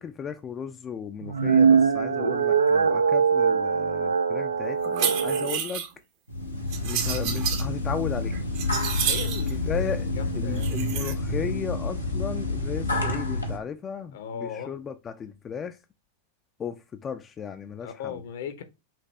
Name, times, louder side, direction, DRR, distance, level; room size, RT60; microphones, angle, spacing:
voice 1, 0.0-5.8 6.8-8.4 9.7-15.8 16.6-18.2, left 7 dB, 25° left, 0.4 m, -35 dB
sound 1, 1.2-5.6, right 6 dB, 75° right, 0.4 m, -22 dB
sound 2, 4.8-5.9 6.7-7.6 8.2-9.5 10.6-11.1, right 8 dB, 45° right, 0.8 m, -30 dB
sound 3, 6.3-13.6, left 2 dB, 90° left, 1.1 m, -29 dB
voice 2, 9.0-11.0 14.1-14.7 17.8-18.6, left 7 dB, 55° left, 0.8 m, -38 dB
5.8 x 2.6 x 3.3 m
figure-of-eight pair, 90°, 0 cm